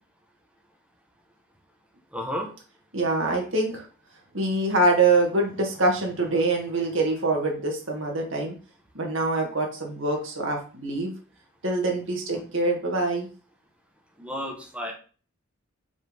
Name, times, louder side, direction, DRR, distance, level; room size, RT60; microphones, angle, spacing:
voice 1, 2.1-2.5 12.3-12.4 14.2-14.9, equal, 5° right, 0 dB, 1.5 m, -32 dB
voice 2, 2.9-3.8 4.3-8.5 8.9-11.1 11.6-13.3, right 2 dB, 70° right, 1 dB, 2.2 m, -24 dB
6.2 x 4.2 x 5.4 m, 0.38 s
head